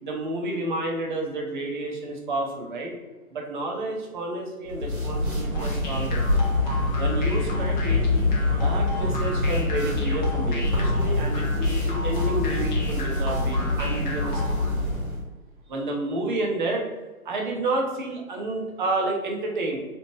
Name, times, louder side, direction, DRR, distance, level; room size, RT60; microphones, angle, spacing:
voice 1, 0.0-2.9 3.3-6.2 6.9-8.1 8.5-14.4 15.7-16.8 17.2-19.8, right 2 dB, 35° right, 0 dB, 0.6 m, -30 dB
sound 1, 4.7-15.2, left 2 dB, 75° right, 1.4 m, -25 dB
sound 2, 5.5-14.7, left 2 dB, 35° left, 0.5 m, -36 dB
2.9 x 2.0 x 3.1 m, 1.2 s
figure-of-eight pair, 135°, 43 cm